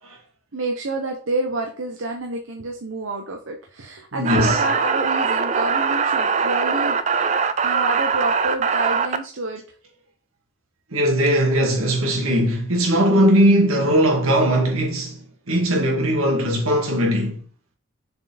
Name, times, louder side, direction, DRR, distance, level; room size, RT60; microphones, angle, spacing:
voice 1, 0.5-7.0 7.6-9.6, right 2 dB, 75° right, 0.9 m, -28 dB
voice 2, 4.1-4.6 10.9-17.4, equal, 90° right, 2.2 m, -19 dB
sound 1, 4.3-9.2, right 5 dB, 35° right, 0.4 m, -21 dB
6.7 x 4.5 x 4.1 m
head